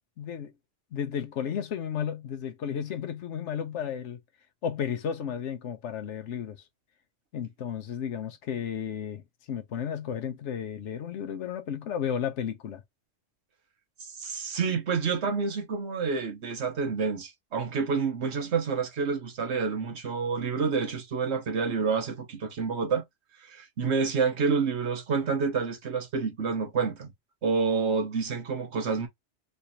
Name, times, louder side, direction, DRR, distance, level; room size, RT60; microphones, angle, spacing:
voice 1, 0.2-0.5 0.9-4.2 4.6-6.6 7.3-9.2 9.5-12.8, left 8 dB, 80° left, 1.0 m, -33 dB
voice 2, 14.0-23.0 23.4-27.1 27.4-29.1, right 5 dB, 70° right, 1.2 m, -28 dB
3.3 x 3.2 x 2.7 m
omnidirectional pair, 1.2 m